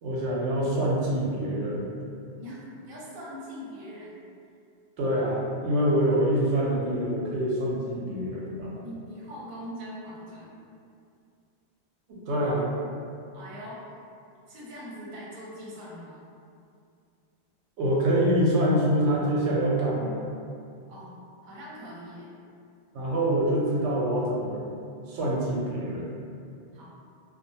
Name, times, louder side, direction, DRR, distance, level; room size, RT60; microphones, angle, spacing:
voice 1, 0.0-1.9 5.0-8.7 12.1-12.7 17.8-20.2 22.9-24.6 25.1-26.1, right 1 dB, 90° right, -5 dB, 0.9 m, -25 dB
voice 2, 2.4-4.2 8.8-10.6 13.3-13.8 14.5-16.2 20.9-21.1 21.4-22.3 26.7-26.9, equal, 50° right, -7 dB, 0.7 m, -42 dB
2.3 x 2.2 x 2.6 m, 2.4 s
omnidirectional pair, 1.1 m